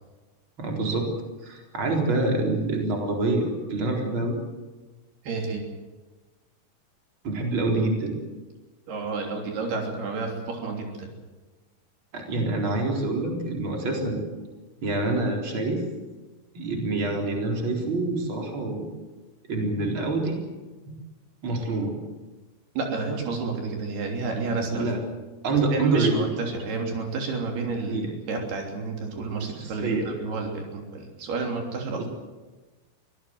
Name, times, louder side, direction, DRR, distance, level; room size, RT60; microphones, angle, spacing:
voice 1, 0.6-1.1 1.4-4.4 7.2-8.2 12.1-14.2 14.8-15.8 16.5-18.9 19.5-20.4 20.8-20.9 21.4-21.9 24.7-25.0 25.4-26.3 27.9-28.1 29.8-30.1 31.9-32.1, right 2 dB, 30° right, 1 dB, 4.6 m, -26 dB
voice 2, 5.2-5.7 8.9-11.1 22.8-24.9 25.7-32.1, right 4 dB, 80° right, 2 dB, 5.2 m, -30 dB
24.5 x 17.5 x 7.8 m, 1.2 s
omnidirectional pair, 4.5 m